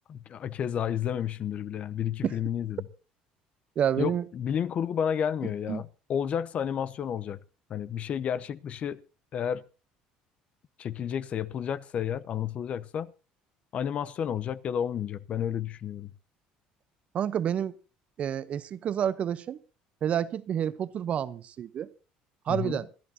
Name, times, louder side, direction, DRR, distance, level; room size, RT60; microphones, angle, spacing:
voice 1, 0.1-2.8 4.0-7.4 7.7-9.0 9.3-9.6 10.8-13.1 13.7-16.1 22.5-22.8, left 8 dB, 45° left, 0.7 m, -31 dB
voice 2, 3.8-4.2 5.4-5.8 17.1-17.8 18.2-19.6 20.0-21.9 22.5-22.9, right 9 dB, 50° right, 0.8 m, -29 dB
27.0 x 11.5 x 2.8 m
supercardioid pair, 95°, 3 cm